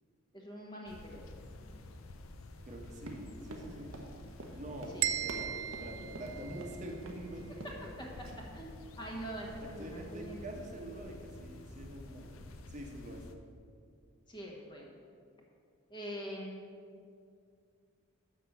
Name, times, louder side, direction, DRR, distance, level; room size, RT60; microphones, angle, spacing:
voice 1, 0.3-1.2 4.9-5.1 7.4-7.7 8.0-10.5 14.3-14.9 15.9-16.6, equal, 20° left, -2 dB, 1.2 m, -44 dB
sound 1, 0.9-13.3, left 2 dB, 85° left, 0.7 m, -50 dB
voice 2, 2.6-4.0 4.5-7.5 9.6-12.4 12.7-13.2, right 1 dB, 35° right, 1 dB, 1.1 m, -45 dB
Run, 3.0-6.7 7.1-7.2 7.5-7.9 8.2-8.4, right 2 dB, 90° right, 1.0 m, -47 dB
sound 2, 5.0-7.0, right 11 dB, 65° right, 0.4 m, -37 dB
6.3 x 5.9 x 7.2 m, 2.3 s
head